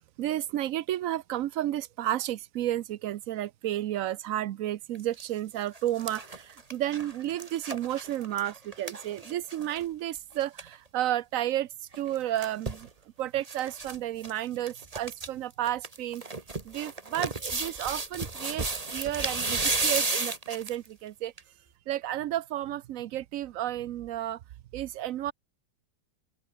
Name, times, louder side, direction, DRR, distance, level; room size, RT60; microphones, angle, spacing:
voice 1, 0.2-12.9 13.2-16.2 16.6-21.3 21.9-24.4 24.7-25.3, right 13 dB, 90° right, 0.7 m, -32 dB
sound 1, 4.9-5.2 5.6-9.8 10.1-10.2 10.4-10.7 11.9-12.9 13.4-14.0 14.2-14.3 14.7-15.3 15.7-20.9 21.4-21.5, right 3 dB, 20° right, 1.6 m, -33 dB
open air
omnidirectional pair, 2.1 m